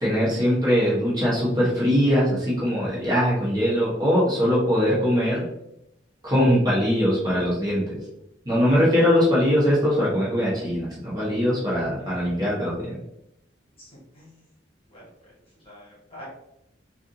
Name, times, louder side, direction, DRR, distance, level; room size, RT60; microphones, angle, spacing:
voice 1, 0.0-5.4 6.2-8.0 8.4-13.0, equal, 20° right, -7 dB, 1.3 m, -21 dB
voice 2, 11.9-12.5 13.8-14.4 14.9-15.0 15.6-16.3, equal, 30° left, -6 dB, 1.5 m, -46 dB
4.6 x 2.6 x 2.7 m, 0.82 s
head